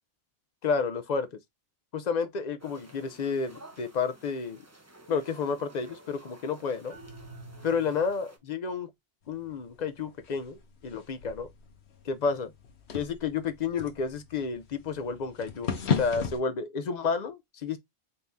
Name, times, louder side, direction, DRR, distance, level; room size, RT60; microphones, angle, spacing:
voice 1, 0.6-1.3 1.9-4.6 5.1-6.9 7.6-8.9 9.3-11.5 12.0-12.5 12.9-15.7 16.0-17.8, left 5 dB, 50° left, 0.6 m, -31 dB
sound 1, 2.6-8.4, right 1 dB, 15° right, 0.7 m, -53 dB
sound 2, 6.9-8.4, right 2 dB, 85° right, 1.6 m, -48 dB
sound 3, 9.3-16.4, left 6 dB, 80° left, 1.1 m, -36 dB
4.2 x 2.7 x 3.5 m
omnidirectional pair, 1.1 m